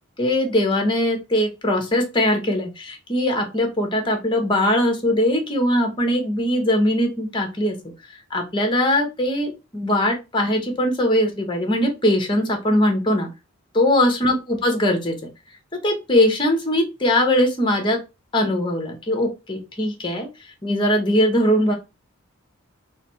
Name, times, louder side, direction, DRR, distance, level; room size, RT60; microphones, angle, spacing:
voice 1, 0.2-7.8 8.3-13.3 13.7-15.3 15.7-18.0 18.3-20.3 20.6-21.7, left 1 dB, 20° left, 4 dB, 1.0 m, -21 dB
4.0 x 2.1 x 4.5 m, 0.26 s
head